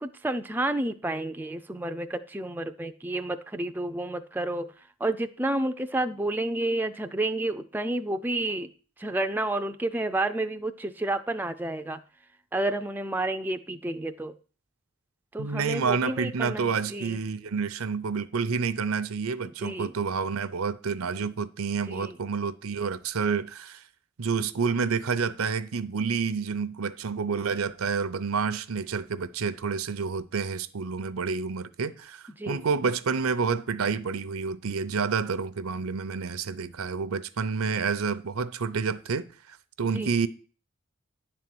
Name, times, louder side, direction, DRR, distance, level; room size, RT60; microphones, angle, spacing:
voice 1, 0.0-4.7 5.0-8.7 9.0-12.0 12.5-14.3 15.3-17.2 19.5-19.9 21.9-22.2 32.4-32.6 39.9-40.1, right 2 dB, 10° right, 0.3 m, -30 dB
voice 2, 15.4-23.8 24.2-40.3, right 5 dB, 80° right, 0.6 m, -29 dB
10.5 x 4.2 x 7.7 m
head